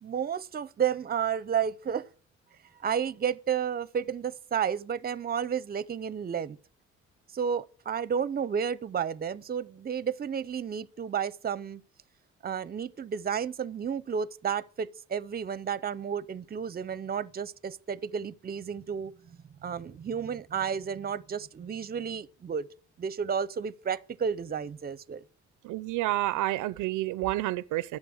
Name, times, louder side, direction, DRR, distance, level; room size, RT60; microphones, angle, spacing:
voice 1, 0.0-2.1 2.8-6.6 7.3-11.8 12.4-22.7 23.0-25.2, right 7 dB, 30° right, 0.6 m, -32 dB
voice 2, 25.6-28.0, right 16 dB, 80° right, 0.5 m, -29 dB
11.0 x 7.5 x 6.3 m
cardioid pair, 90°, 30 cm